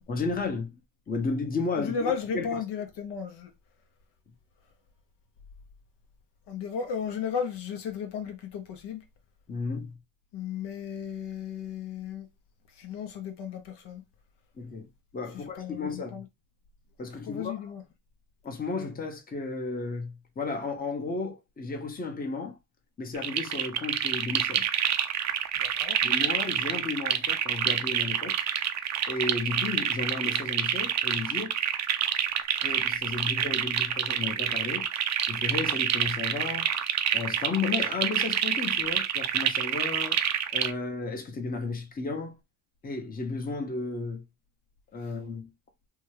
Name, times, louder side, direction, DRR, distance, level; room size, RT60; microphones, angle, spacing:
voice 1, 0.1-0.8 1.1-2.6 9.5-10.0 14.6-14.9 15.1-16.2 17.0-17.7 18.4-22.5 23.0-24.7 26.0-28.4 29.1-31.5 32.6-34.9 35.3-36.7 37.1-40.2 40.5-42.4 42.8-44.2 44.9-45.5, left 4 dB, 20° left, 0.8 m, -33 dB
voice 2, 1.8-3.5 6.5-9.0 10.3-12.3 12.8-14.0 15.3-16.3 17.3-17.8 25.6-26.0, left 7 dB, 60° left, 0.8 m, -34 dB
sound 1, 23.1-40.7, right 9 dB, 40° right, 0.4 m, -27 dB
2.8 x 2.3 x 3.2 m
supercardioid pair, 90°, 46 cm